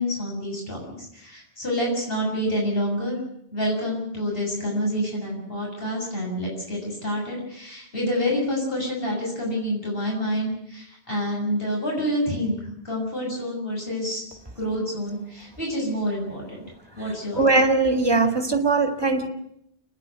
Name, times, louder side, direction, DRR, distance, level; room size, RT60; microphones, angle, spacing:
voice 1, 0.0-3.2 3.5-12.6 12.8-14.2 14.6-16.6 17.0-17.4, equal, 65° left, 7.3 m, -27 dB
voice 2, 17.4-19.3, right 3 dB, 25° right, 2.0 m, -20 dB
30.0 x 10.5 x 9.4 m
omnidirectional pair, 1.0 m